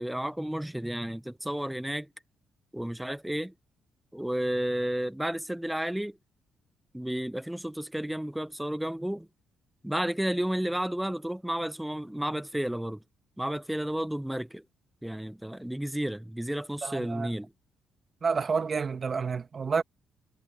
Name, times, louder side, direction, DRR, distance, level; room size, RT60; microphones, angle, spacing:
voice 1, 0.0-2.1 2.7-3.5 4.1-6.2 6.9-9.3 9.8-13.0 13.4-14.6 15.0-17.5, right 1 dB, 5° right, 0.5 m, -32 dB
voice 2, 16.8-17.3 18.2-19.8, right 5 dB, 40° right, 1.2 m, -29 dB
cardioid pair, 90°, 0 cm